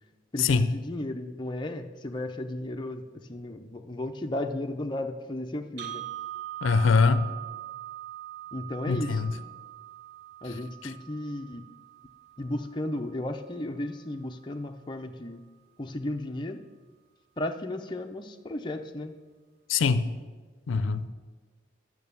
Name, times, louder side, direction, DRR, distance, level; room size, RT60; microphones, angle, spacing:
voice 1, 0.3-6.0 8.5-9.2 10.4-11.7 12.4-15.4 15.8-16.6 17.4-19.1, left 1 dB, 25° left, 4 dB, 0.5 m, -34 dB
sound 1, 5.8-13.8, right 13 dB, 55° right, 0.6 m, -42 dB
voice 2, 6.6-7.3 8.9-9.3 19.7-20.1 20.7-21.1, left 4 dB, 80° left, 13 dB, 0.4 m, -23 dB
8.9 x 6.6 x 6.9 m, 1.4 s
head